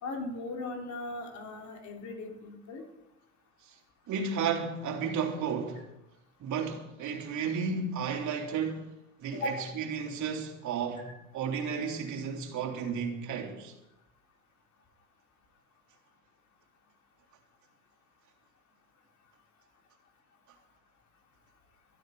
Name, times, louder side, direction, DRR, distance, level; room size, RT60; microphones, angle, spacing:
voice 1, 0.0-2.8 9.3-9.7 11.0-11.1, left 2 dB, 45° left, 4.0 m, -38 dB
voice 2, 4.1-5.9 6.4-8.9 9.2-13.7, right 6 dB, 45° right, 3.6 m, -33 dB
24.0 x 13.0 x 4.0 m
hypercardioid pair, 70°, 39 cm